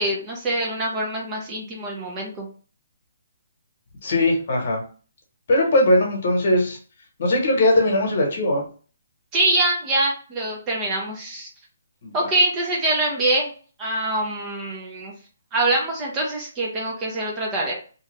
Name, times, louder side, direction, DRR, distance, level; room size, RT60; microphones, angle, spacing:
voice 1, 0.0-2.5 9.3-11.5 12.1-13.5 13.8-15.1 15.5-17.7, right 2 dB, 15° right, -2 dB, 0.5 m, -24 dB
voice 2, 4.0-4.8 5.5-6.8 7.2-8.7 12.0-12.3, left 1 dB, 45° left, 1 dB, 1.1 m, -20 dB
2.8 x 2.4 x 3.1 m, 0.39 s
hypercardioid pair, 170°, 0 cm